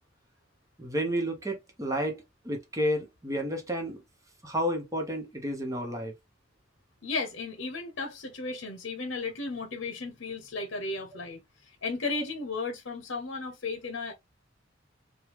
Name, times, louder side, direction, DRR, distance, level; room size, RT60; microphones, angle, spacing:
voice 1, 0.8-4.0 4.4-6.1, equal, 15° right, 1.0 m, -31 dB
voice 2, 7.0-14.1, left 3 dB, 65° left, 0.8 m, -35 dB
3.4 x 2.3 x 3.0 m
head